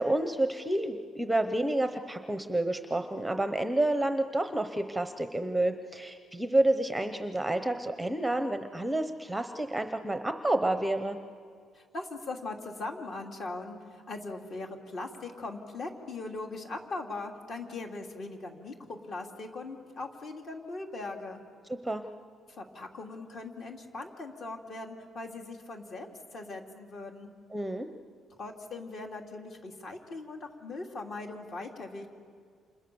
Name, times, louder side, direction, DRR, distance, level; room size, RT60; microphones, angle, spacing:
voice 1, 0.0-11.2 21.8-22.0 27.5-27.9, right 1 dB, 5° right, 8 dB, 0.9 m, -29 dB
voice 2, 11.7-21.4 22.5-27.3 28.4-32.1, left 3 dB, 45° left, 3 dB, 3.0 m, -40 dB
29.0 x 27.5 x 7.1 m, 2.1 s
cardioid pair, 145°, 0 cm